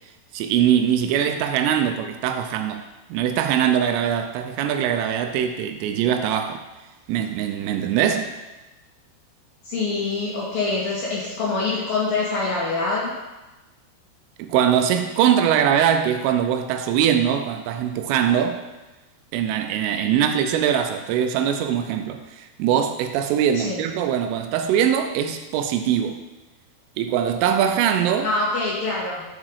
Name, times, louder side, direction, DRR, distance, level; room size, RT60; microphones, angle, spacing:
voice 1, 0.3-6.7 7.1-8.3 14.4-18.6 19.3-26.2 27.0-28.3, right 9 dB, 85° right, 6 dB, 3.1 m, -22 dB
voice 2, 9.6-13.1 23.5-23.8 28.2-29.2, left 3 dB, 55° left, -5 dB, 2.8 m, -25 dB
11.0 x 5.9 x 4.7 m, 1.1 s
omnidirectional pair, 5.9 m